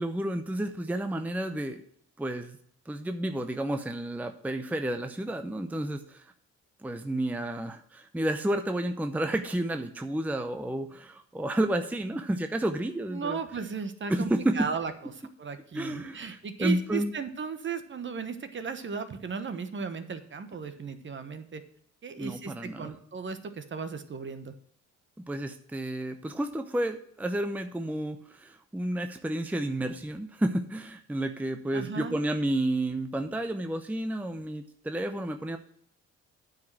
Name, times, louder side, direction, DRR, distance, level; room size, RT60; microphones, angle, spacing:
voice 1, 0.0-1.8 2.2-2.6 2.9-6.3 6.8-13.4 14.1-14.7 15.7-17.1 22.2-22.9 25.3-35.6, right 1 dB, 5° right, 7 dB, 0.7 m, -31 dB
voice 2, 13.1-21.6 22.0-24.5 31.7-32.2, right 5 dB, 40° right, 9 dB, 1.2 m, -36 dB
9.3 x 5.1 x 7.5 m, 0.66 s
cardioid pair, 90°, 30 cm